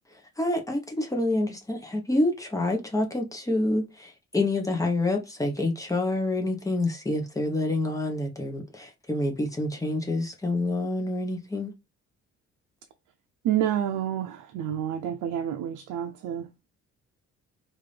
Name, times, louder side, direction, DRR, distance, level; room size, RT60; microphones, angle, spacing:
voice 1, 0.4-11.7, left 2 dB, 10° left, 1.0 m, -27 dB
voice 2, 13.4-16.5, right 10 dB, 85° right, 0.6 m, -29 dB
3.6 x 2.6 x 3.3 m
cardioid pair, 90°, 30 cm